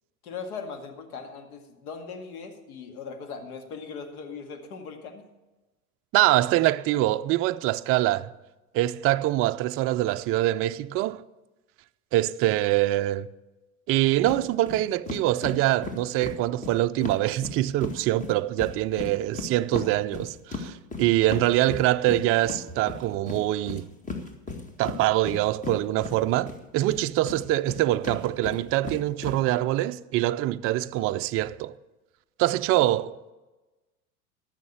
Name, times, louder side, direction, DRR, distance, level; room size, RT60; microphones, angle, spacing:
voice 1, 0.2-5.2 32.8-33.0, left 5 dB, 70° left, 2.2 m, -39 dB
voice 2, 6.1-8.3 8.7-11.2 12.1-13.3 13.9-23.9 24.8-31.7 32.4-33.1, right 15 dB, 30° right, 0.4 m, -24 dB
sound 1, 14.3-14.4 14.7-14.8 15.1-18.0 18.2-26.6 26.9-29.4, left 4 dB, 15° left, 1.9 m, -36 dB
13.5 x 6.4 x 8.1 m
hypercardioid pair, 90°, 44 cm